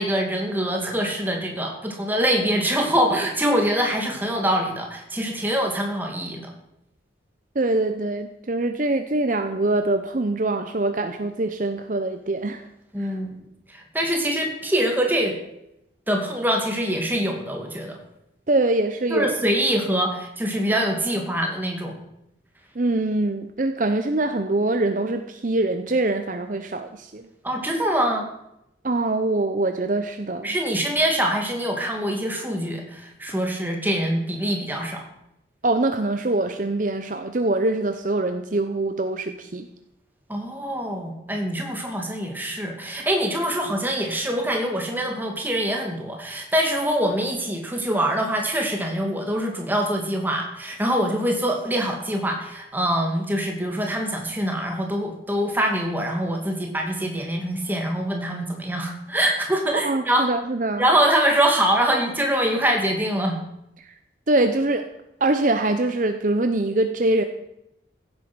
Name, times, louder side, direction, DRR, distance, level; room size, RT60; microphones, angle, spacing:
voice 1, 0.0-6.5 12.9-13.3 13.7-15.4 16.1-18.0 19.1-22.0 27.4-28.3 30.4-35.0 40.3-60.3 60.8-63.4, equal, 10° right, 2 dB, 2.3 m, -24 dB
voice 2, 7.6-12.6 13.0-13.1 18.5-19.3 22.8-27.3 28.8-30.6 35.6-39.7 59.8-60.8 63.8-63.9 64.3-64.9 65.2-67.2, right 2 dB, 45° right, 7 dB, 0.8 m, -23 dB
15.5 x 8.9 x 6.2 m, 0.83 s
head